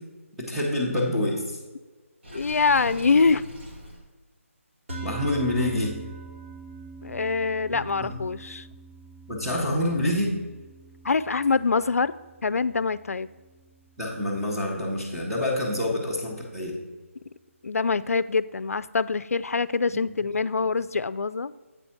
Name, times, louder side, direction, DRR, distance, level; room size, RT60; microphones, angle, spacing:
voice 1, 0.4-1.6 5.0-5.9 7.7-8.1 9.3-10.3 14.0-16.8, left 1 dB, ahead, -8 dB, 0.8 m, -27 dB
Water / Sink (filling or washing), 2.2-4.0, equal, 45° right, 1.6 m, -40 dB
voice 2, 2.3-3.4 7.0-8.7 11.0-12.2 12.4-13.3 17.6-21.5, left 4 dB, 85° left, 16 dB, 0.4 m, -24 dB
sound 1, 4.9-15.3, right 3 dB, 60° right, 2.6 m, -44 dB
8.2 x 4.0 x 5.7 m, 1.3 s
figure-of-eight pair, 170°, 8 cm